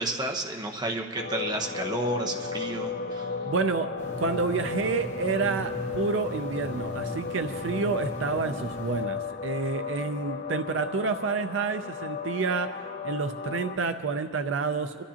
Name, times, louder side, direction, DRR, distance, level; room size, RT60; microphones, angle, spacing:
voice 1, 0.0-3.3, right 2 dB, 20° right, 2 dB, 0.9 m, -31 dB
sound 1, 1.1-13.8, left 5 dB, 50° left, 0.5 m, -35 dB
voice 2, 3.4-3.9 4.2-15.0, right 4 dB, 65° right, 9 dB, 0.5 m, -29 dB
sound 2, 4.0-9.0, equal, 35° left, 1.8 m, -39 dB
26.5 x 12.5 x 2.9 m, 2.1 s
head